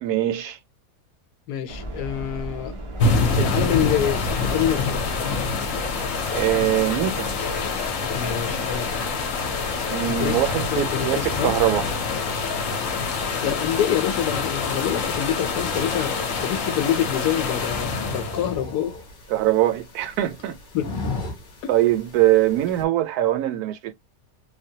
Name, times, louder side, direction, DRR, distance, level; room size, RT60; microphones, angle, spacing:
voice 1, 0.0-0.6 6.3-7.3 9.9-11.9 19.3-20.6 21.7-23.9, right 13 dB, 75° right, 1.1 m, -22 dB
voice 2, 1.5-2.7 3.4-5.0 8.1-8.9 10.0-10.3 10.7-11.5 13.4-16.1 16.4-18.9 20.7-20.9 21.6-21.7, left 10 dB, 85° left, 1.2 m, -26 dB
sound 1, 1.7-10.9, equal, 55° right, 0.3 m, -36 dB
sound 2, 3.0-18.5, left 4 dB, 60° left, 1.0 m, -26 dB
sound 3, 15.6-22.9, left 3 dB, 40° left, 0.8 m, -37 dB
3.2 x 2.2 x 2.7 m
omnidirectional pair, 1.7 m